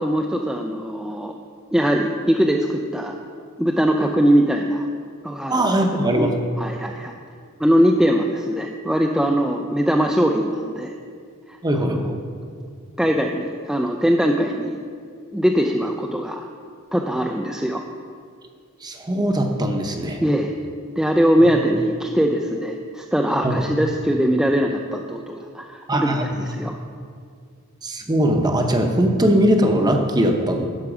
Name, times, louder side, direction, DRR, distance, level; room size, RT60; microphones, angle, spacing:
voice 1, 0.0-1.3 1.7-3.2 3.6-4.9 5.2-5.8 6.0-6.3 6.6-7.1 7.6-10.9 11.5-12.1 13.0-14.8 15.3-16.5 16.9-17.8 20.2-20.5 21.0-26.8, equal, 5° right, 1 dB, 0.4 m, -21 dB
voice 2, 5.5-6.3 11.6-12.0 18.8-20.2 23.4-23.6 25.9-26.2 27.8-30.7, right 1 dB, 20° right, 4 dB, 0.8 m, -20 dB
11.5 x 4.7 x 6.2 m, 2.2 s
head